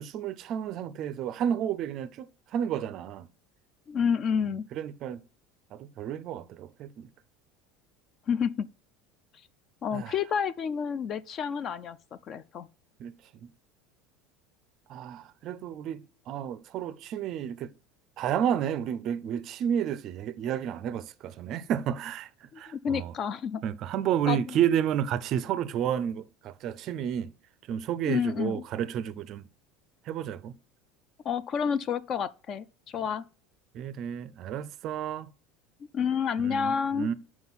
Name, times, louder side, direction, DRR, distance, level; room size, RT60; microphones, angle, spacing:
voice 1, 0.0-3.3 4.4-5.2 5.7-7.1 9.9-10.1 13.0-13.5 14.9-17.7 18.2-23.1 23.6-27.3 27.7-29.5 30.0-30.5 33.7-35.3 36.4-37.1, right 9 dB, 40° right, 0.4 m, -31 dB
voice 2, 3.9-4.6 8.3-8.7 9.8-12.0 12.3-12.7 22.5-23.6 24.2-24.4 28.1-28.6 31.2-33.2 35.9-37.1, left 7 dB, 30° left, 0.3 m, -29 dB
5.4 x 4.8 x 4.0 m
cardioid pair, 155°, 0 cm